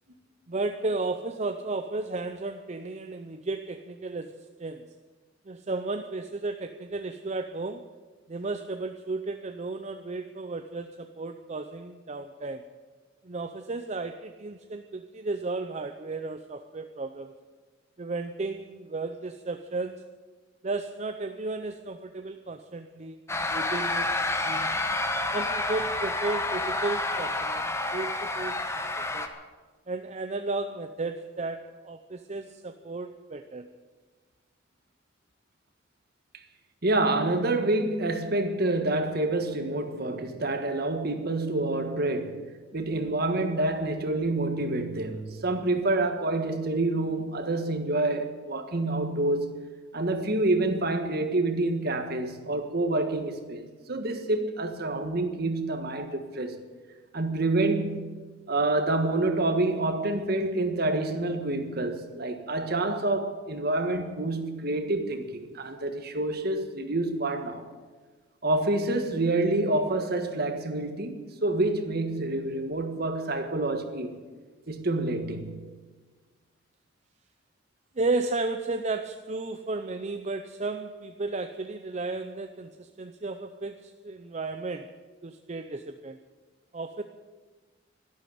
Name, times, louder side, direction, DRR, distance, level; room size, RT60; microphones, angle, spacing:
voice 1, 0.5-4.9 5.5-7.9 8.3-12.7 13.2-17.3 18.0-20.0 20.6-24.1 24.4-24.8 25.3-28.7 29.0-29.3 29.9-33.7 78.0-84.9 85.2-86.2 86.7-87.0, right 3 dB, 35° right, 0.6 m, -34 dB
sound 1, 23.3-29.3, left 2 dB, 15° left, 1.1 m, -29 dB
voice 2, 36.8-42.4 42.7-49.5 49.9-56.6 57.1-58.1 58.5-67.7 68.4-74.1 74.7-75.6, right 2 dB, 55° right, 1.6 m, -27 dB
12.5 x 12.0 x 9.5 m
head